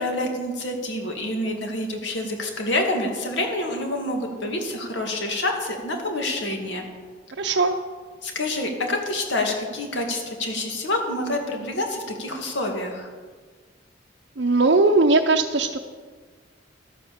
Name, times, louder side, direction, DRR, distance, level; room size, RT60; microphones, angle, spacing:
voice 1, 0.0-6.8 8.2-13.1, left 1 dB, 70° left, 2 dB, 2.2 m, -27 dB
voice 2, 7.4-7.8 14.4-15.8, right 3 dB, 60° right, 1 dB, 0.6 m, -19 dB
13.0 x 8.7 x 7.0 m, 1.5 s
head